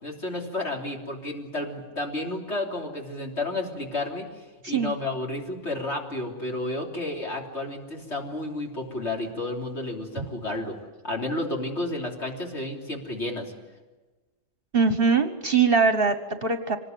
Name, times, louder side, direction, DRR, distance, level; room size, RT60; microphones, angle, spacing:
voice 1, 0.0-4.3 4.7-10.8 11.0-13.5, left 2 dB, 50° left, 0 dB, 3.7 m, -31 dB
voice 2, 14.7-16.8, right 5 dB, 45° right, 9 dB, 1.3 m, -22 dB
25.5 x 19.5 x 9.2 m, 1.2 s
omnidirectional pair, 1.5 m